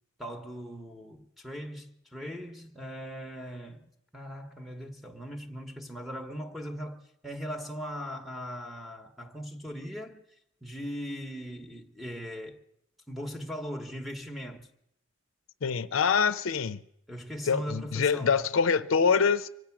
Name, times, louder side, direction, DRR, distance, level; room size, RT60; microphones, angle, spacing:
voice 1, 0.2-10.2 10.6-12.6 13.1-14.7 17.1-18.4, equal, ahead, 1.0 m, -39 dB
voice 2, 15.6-16.8 17.5-19.5, left 6 dB, 75° left, 0.6 m, -25 dB
24.5 x 8.9 x 5.9 m
head